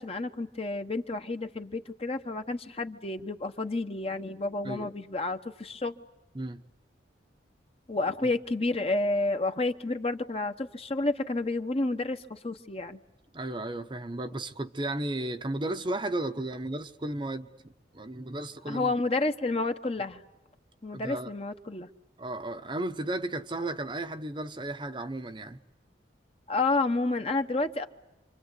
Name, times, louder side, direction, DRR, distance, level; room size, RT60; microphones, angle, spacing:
voice 1, 0.0-5.9 7.9-13.0 18.7-20.2 20.8-21.9 26.5-27.9, left 2 dB, 30° left, 1.1 m, -30 dB
voice 2, 13.3-18.9 20.9-21.3 22.2-25.6, right 1 dB, 25° right, 0.9 m, -34 dB
27.5 x 25.5 x 8.2 m
head